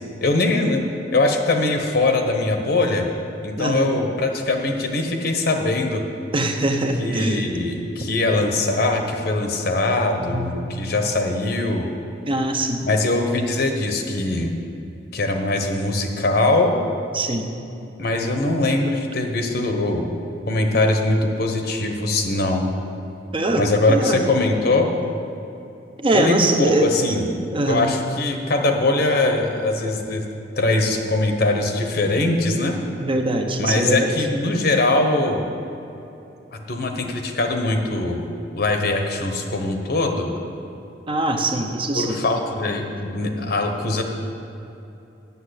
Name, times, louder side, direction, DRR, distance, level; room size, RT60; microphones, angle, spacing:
voice 1, 0.2-0.8 1.1-3.1 3.4-6.0 7.0-11.9 12.8-14.5 15.1-16.7 18.0-20.1 20.5-22.7 23.6-24.9 26.1-27.3 27.7-30.2 30.6-32.8 33.6-35.5 36.5-38.3 38.6-40.3 41.9-44.0, left 2 dB, 60° left, 4 dB, 1.1 m, -21 dB
voice 2, 3.6-3.9 6.3-7.4 10.3-10.5 12.3-12.8 17.1-17.5 23.3-24.2 26.0-26.9 27.5-27.9 33.0-34.1 41.1-42.2, right 1 dB, 30° right, 4 dB, 0.9 m, -22 dB
8.2 x 7.2 x 8.2 m, 2.8 s
head